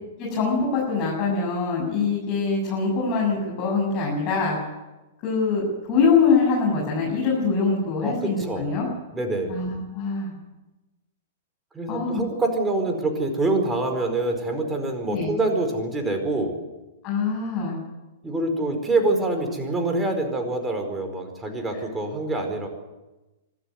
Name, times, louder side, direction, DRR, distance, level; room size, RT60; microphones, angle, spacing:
voice 1, 0.2-4.6 5.2-8.9 9.5-10.3 11.9-12.2 15.1-15.3 17.0-17.8, left 4 dB, 35° left, -4 dB, 7.8 m, -23 dB
voice 2, 8.0-8.6 9.1-9.5 11.7-16.6 18.2-22.7, right 2 dB, 10° right, 4 dB, 4.9 m, -25 dB
25.0 x 13.0 x 9.5 m, 1.1 s
figure-of-eight pair, 105°, 0 cm